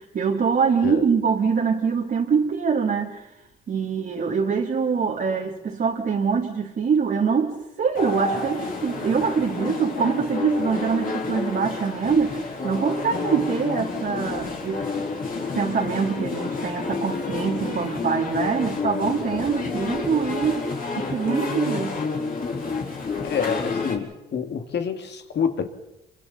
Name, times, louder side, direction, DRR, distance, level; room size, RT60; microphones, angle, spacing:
voice 1, 0.0-3.2 3.7-15.1 15.3-20.7 21.0-22.0, right 5 dB, 50° right, 2.9 m, -24 dB
sound 1, 7.9-24.0, left 4 dB, 45° left, 4.0 m, -29 dB
voice 2, 23.2-25.7, left 7 dB, 60° left, 2.2 m, -27 dB
28.0 x 24.0 x 4.1 m
cardioid pair, 90°, 20 cm